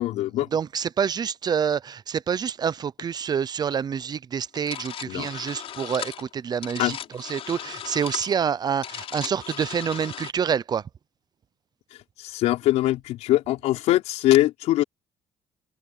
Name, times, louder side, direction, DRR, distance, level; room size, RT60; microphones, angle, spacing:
voice 1, 0.0-0.5 5.1-5.3 6.8-7.0 11.9-14.8, left 15 dB, 80° left, 5.2 m, -22 dB
voice 2, 0.5-7.0 7.3-10.8, right 7 dB, 35° right, 0.6 m, -27 dB
sound 1, 4.5-10.3, left 10 dB, 60° left, 6.9 m, -37 dB
cardioid pair, 110°, 11 cm